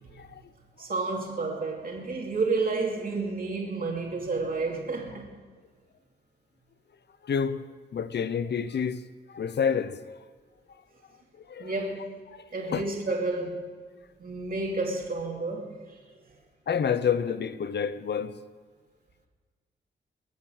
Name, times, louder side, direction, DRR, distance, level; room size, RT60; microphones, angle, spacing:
voice 1, 0.8-5.3 11.6-12.2 12.5-13.7 14.2-16.0, right 3 dB, 50° right, 2.6 m, -30 dB
voice 2, 7.2-7.7 7.9-10.0 11.5-11.7 12.7-12.9 16.7-18.4, left 7 dB, 65° left, 0.8 m, -28 dB
22.0 x 8.1 x 6.4 m
cardioid pair, 80°, 19 cm